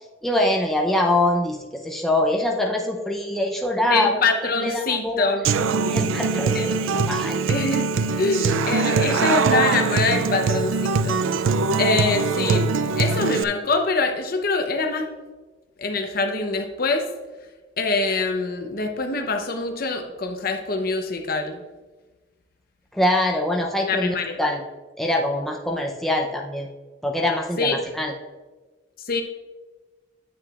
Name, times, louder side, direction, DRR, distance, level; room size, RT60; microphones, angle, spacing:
voice 1, 0.2-1.6 1.8-4.2 4.6-5.4 5.9-7.4 22.9-24.6 25.0-26.7 27.0-28.1, left 1 dB, ahead, -1 dB, 0.6 m, -23 dB
voice 2, 3.8-5.4 6.5-6.7 7.5-7.9 8.2-11.2 11.8-12.7 13.0-15.1 15.8-17.1 17.8-21.6 23.8-24.4 27.6-27.8 29.1-29.2, left 3 dB, 50° left, 4 dB, 0.8 m, -24 dB
Human voice / Acoustic guitar, 5.4-13.4, right 4 dB, 90° right, 0.4 m, -22 dB
9.6 x 7.5 x 2.4 m, 1.2 s
head